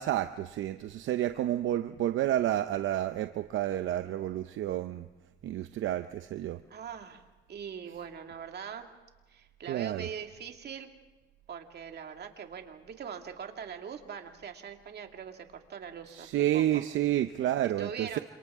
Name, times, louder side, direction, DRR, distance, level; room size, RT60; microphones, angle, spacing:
voice 1, 0.0-5.1 5.4-6.6 9.7-10.1 16.1-18.2, right 12 dB, 75° right, 9 dB, 0.7 m, -30 dB
voice 2, 6.7-7.2 7.5-8.9 9.3-10.9 11.5-16.8 17.6-18.2, right 7 dB, 55° right, 4 dB, 2.2 m, -42 dB
29.0 x 26.5 x 3.7 m, 1.2 s
cardioid pair, 90°, 20 cm